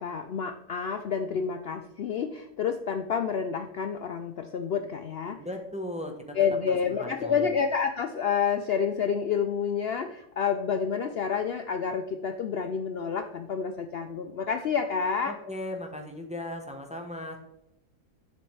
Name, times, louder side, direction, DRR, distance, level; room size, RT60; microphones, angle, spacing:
voice 1, 0.0-5.4 6.3-15.3, left 6 dB, 80° left, 7 dB, 0.5 m, -29 dB
voice 2, 5.4-6.4 7.0-7.6 15.3-17.4, left 1 dB, 5° right, 3 dB, 0.8 m, -37 dB
10.5 x 7.0 x 3.3 m, 0.81 s
omnidirectional pair, 1.7 m